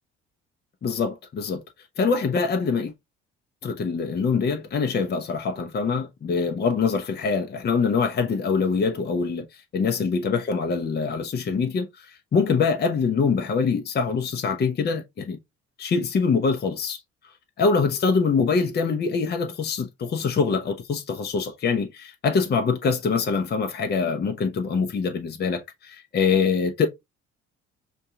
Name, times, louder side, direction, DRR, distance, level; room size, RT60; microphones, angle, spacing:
voice 1, 0.8-1.6 2.0-2.9 3.6-9.5 9.7-15.4 15.8-17.0 17.6-26.9, left 5 dB, 30° left, 0.8 m, -24 dB
5.4 x 2.7 x 2.3 m
figure-of-eight pair, 50°, 36 cm